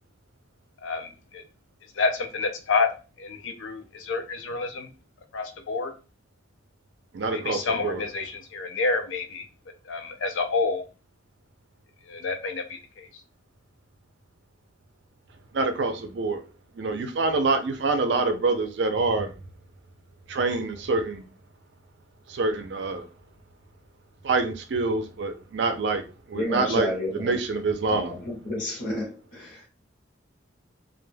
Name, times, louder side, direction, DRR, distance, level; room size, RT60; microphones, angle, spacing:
voice 1, 0.8-1.4 1.9-2.9 3.2-4.9 5.3-5.9 7.2-9.5 9.9-10.8 12.1-13.1, left 4 dB, 90° left, 0.4 m, -28 dB
voice 2, 7.1-8.0 15.5-16.4 16.8-19.3 20.3-21.2 22.3-23.0 24.2-26.0 26.3-26.9 27.2-28.1, right 3 dB, 70° right, 0.4 m, -26 dB
voice 3, 26.3-27.4 27.9-29.7, left 1 dB, 45° left, 0.6 m, -31 dB
2.1 x 2.0 x 3.2 m
head